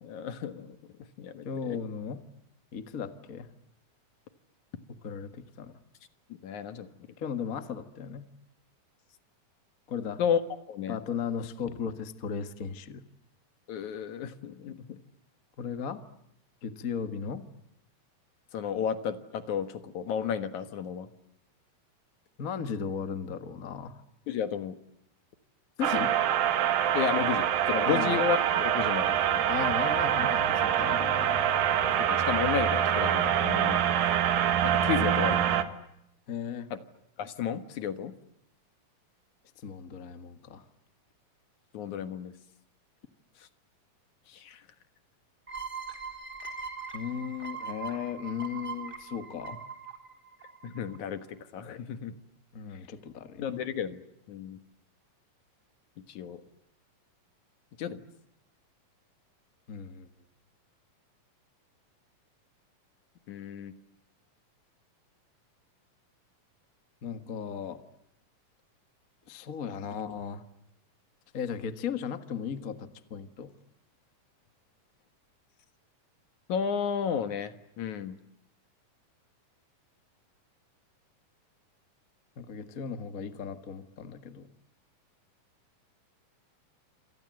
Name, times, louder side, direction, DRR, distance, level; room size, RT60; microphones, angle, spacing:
voice 1, 0.0-0.8 1.2-1.8 6.4-6.9 10.2-10.4 10.7-11.0 13.7-14.8 18.5-21.1 24.3-24.8 26.9-29.5 32.0-34.1 34.6-35.5 36.7-36.8 37.2-38.1 41.7-42.3 43.4-43.5 44.3-44.6 50.6-52.1 53.4-54.0 54.3-54.6 56.1-56.4 57.8-58.0 63.3-63.7 76.5-78.2, left 8 dB, 65° left, 10 dB, 2.8 m, -32 dB
voice 2, 1.4-2.2 2.7-3.5 5.0-5.7 7.2-8.3 9.9-10.2 10.9-13.0 15.6-16.0 16.6-17.4 22.4-24.0 25.8-26.1 27.8-28.2 29.5-31.5 36.3-36.7 39.6-40.6 46.9-49.6 52.5-53.4 59.7-60.1 67.0-67.8 69.3-70.4 71.3-73.5 82.4-84.5, left 7 dB, 40° left, 9 dB, 1.2 m, -36 dB
sound 1, 25.8-35.6, right 10 dB, 90° right, 3.3 m, -25 dB
sound 2, 45.5-51.0, right 5 dB, 15° right, 3.9 m, -41 dB
28.0 x 27.0 x 7.7 m, 0.80 s
omnidirectional pair, 3.9 m